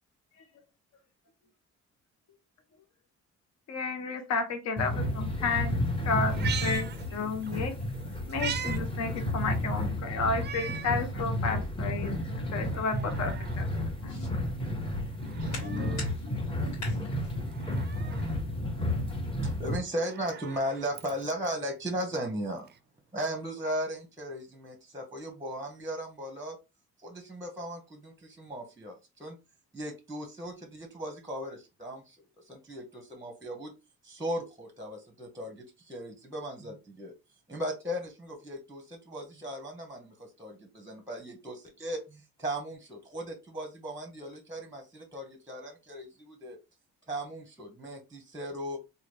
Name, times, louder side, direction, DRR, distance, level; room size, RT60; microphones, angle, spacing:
voice 1, 3.7-5.8 6.1-7.7 8.3-13.7 14.0-14.3, left 4 dB, 60° left, 0.8 m, -32 dB
sound 1, 4.8-19.8, left 1 dB, 15° left, 1.0 m, -32 dB
Meow, 6.3-7.6 7.9-8.8 9.2-9.3 10.3-11.0 11.5-11.6 12.6-13.6 15.1-16.1 17.5-18.3 19.8-21.5 22.7-22.8, right 9 dB, 35° right, 0.4 m, -40 dB
voice 2, 11.1-11.7 12.1-12.4 12.7-12.9 14.1-14.3 15.4-17.3 18.8-18.9, left 3 dB, 85° left, 1.3 m, -41 dB
voice 3, 19.4-22.7 23.1-26.6 27.0-28.9 29.2-29.4 29.7-32.2 32.5-33.7 34.0-37.1 37.5-46.6 47.1-48.8, equal, 10° right, 0.8 m, -37 dB
3.1 x 2.3 x 3.2 m
cardioid pair, 90°, 30 cm